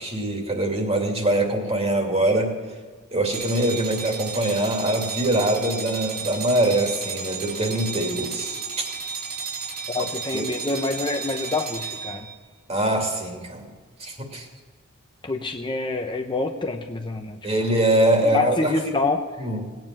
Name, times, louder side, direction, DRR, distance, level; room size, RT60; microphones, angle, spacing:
voice 1, 0.0-2.5 3.1-8.9 10.0-10.1 10.3-10.4 12.7-13.6 14.0-14.5 17.4-18.7 19.4-19.7, right 1 dB, 30° right, 2 dB, 2.6 m, -23 dB
sound 1, 3.3-12.3, right 6 dB, 70° right, 3.9 m, -33 dB
voice 2, 9.9-12.3 15.2-17.4 18.3-19.2, left 3 dB, 20° left, 4 dB, 0.8 m, -26 dB
18.5 x 9.3 x 7.6 m, 1.5 s
head